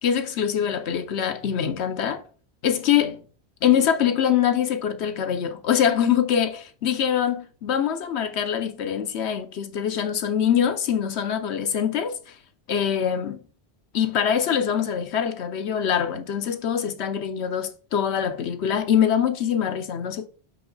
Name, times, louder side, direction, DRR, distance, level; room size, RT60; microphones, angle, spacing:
voice 1, 0.0-2.2 2.6-3.2 3.6-12.2 12.7-13.4 13.9-20.3, left 8 dB, 90° left, 1.1 m, -24 dB
5.5 x 5.2 x 3.9 m
omnidirectional pair, 1.1 m